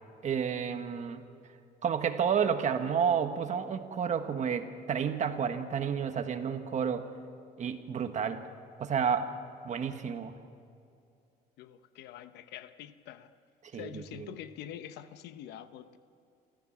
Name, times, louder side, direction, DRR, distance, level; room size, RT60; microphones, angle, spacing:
voice 1, 0.2-1.2 1.8-7.1 7.6-8.4 8.8-9.3 9.6-10.3 13.7-14.0, right 7 dB, 45° right, 8 dB, 1.5 m, -30 dB
voice 2, 11.6-13.3 13.7-16.0, left 11 dB, 85° left, 12 dB, 1.0 m, -45 dB
27.0 x 14.5 x 7.4 m, 2.5 s
cardioid pair, 110°, 17 cm